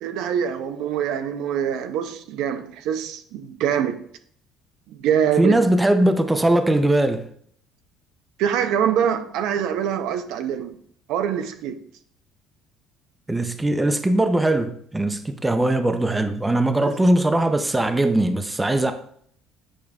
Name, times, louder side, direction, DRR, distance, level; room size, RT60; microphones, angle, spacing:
voice 1, 0.0-4.0 4.9-5.6 8.4-10.7 11.1-11.8, right 9 dB, 70° right, 0.6 m, -24 dB
voice 2, 5.4-7.2 13.3-18.9, right 1 dB, 10° right, 0.5 m, -20 dB
8.6 x 5.0 x 2.3 m
cardioid pair, 130°, 0 cm